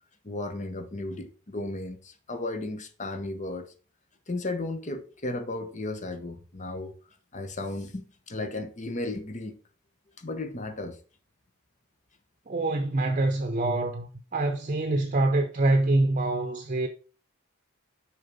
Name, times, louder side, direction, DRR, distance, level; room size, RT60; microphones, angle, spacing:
voice 1, 0.2-3.7 4.3-6.9 7.3-9.6 10.2-11.0, left 2 dB, 35° left, 1.0 m, -34 dB
voice 2, 12.5-16.9, right 2 dB, 40° right, 0.8 m, -25 dB
6.5 x 4.7 x 5.3 m
head